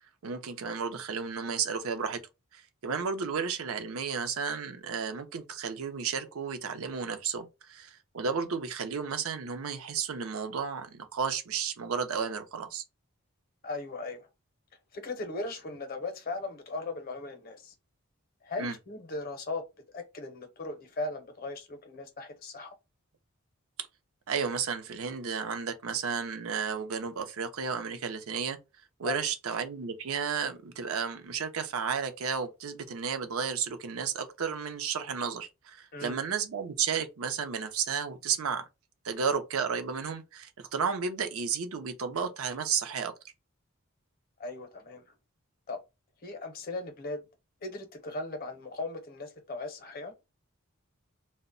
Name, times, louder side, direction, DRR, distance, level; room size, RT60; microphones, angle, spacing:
voice 1, 0.2-2.2 2.5-12.8 18.6-18.8 24.3-28.6 29.0-38.7 39.0-43.1, right 6 dB, 80° right, 0.5 m, -33 dB
voice 2, 13.6-14.3 14.9-17.7 18.4-19.6 19.9-22.7 29.0-29.3 35.9-36.2 44.4-45.0 45.7-45.8 46.2-47.2 47.6-50.1, left 2 dB, 40° left, 0.6 m, -38 dB
2.1 x 2.0 x 3.7 m
head